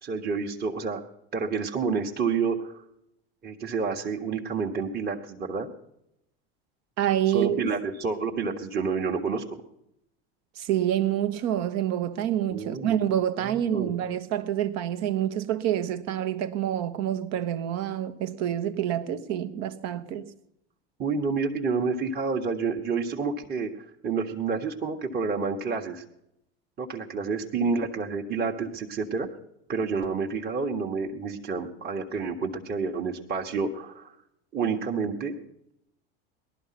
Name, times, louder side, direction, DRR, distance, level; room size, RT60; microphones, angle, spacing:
voice 1, 0.0-1.0 1.3-2.8 3.4-5.7 7.3-9.6 12.5-13.0 13.4-13.9 21.0-26.0 26.8-29.3 29.7-34.1 34.5-35.4, right 5 dB, 30° right, 1.5 m, -29 dB
voice 2, 7.0-7.6 10.6-20.3, right 11 dB, 55° right, 1.3 m, -27 dB
18.0 x 12.0 x 5.9 m
hypercardioid pair, 95°, 31 cm